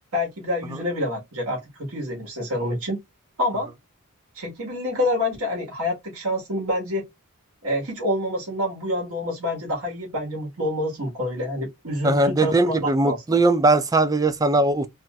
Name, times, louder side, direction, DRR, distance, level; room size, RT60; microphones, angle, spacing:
voice 1, 0.1-3.0 3.4-3.7 4.3-7.1 7.6-13.2, left 1 dB, 70° right, 1.4 m, -27 dB
voice 2, 12.0-14.9, right 2 dB, 15° right, 0.4 m, -20 dB
3.0 x 2.8 x 2.3 m
head